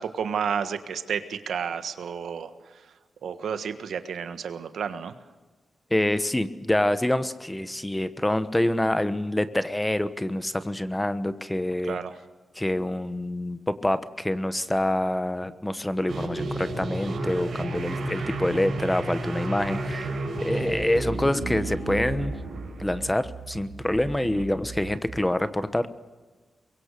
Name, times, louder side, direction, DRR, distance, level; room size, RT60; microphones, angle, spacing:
voice 1, 0.0-2.5 3.2-5.1 11.8-12.1 24.3-24.4, right 7 dB, 90° right, 10 dB, 1.5 m, -31 dB
voice 2, 5.9-12.0 12.6-20.1 20.4-22.3 22.8-25.9, left 1 dB, 10° left, 13 dB, 1.1 m, -26 dB
sound 1, 16.1-25.2, right 2 dB, 65° right, 5.4 m, -32 dB
Bird, 16.9-17.2 17.9-18.2 18.8-19.1 19.6-20.9, left 4 dB, 55° left, 6.0 m, -51 dB
23.5 x 22.5 x 6.8 m, 1.3 s
wide cardioid pair, 105°, 0 cm